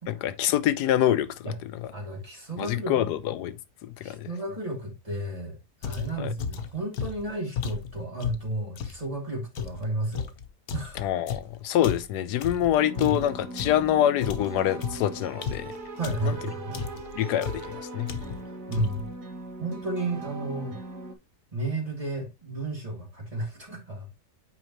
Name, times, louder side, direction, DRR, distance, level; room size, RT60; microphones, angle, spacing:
voice 1, 0.1-1.3 2.6-3.6 3.8-4.3 6.2-6.3 11.0-15.7 16.3-16.4 17.1-18.1, left 11 dB, 85° left, 1.2 m, -25 dB
voice 2, 1.9-3.1 4.0-5.6 5.8-10.3 10.7-11.1 13.0-13.2 16.0-16.8 18.5-19.1 19.6-20.8 21.5-24.1, right 2 dB, 20° right, 2.8 m, -32 dB
sound 1, 5.8-9.0 9.5-13.9 14.2-16.4 16.7-17.1 17.4-17.7 18.1-18.5 18.7-19.1, left 7 dB, 70° left, 1.4 m, -34 dB
sound 2, 12.8-21.1, right 2 dB, 85° right, 2.2 m, -40 dB
8.6 x 5.0 x 2.9 m
omnidirectional pair, 1.7 m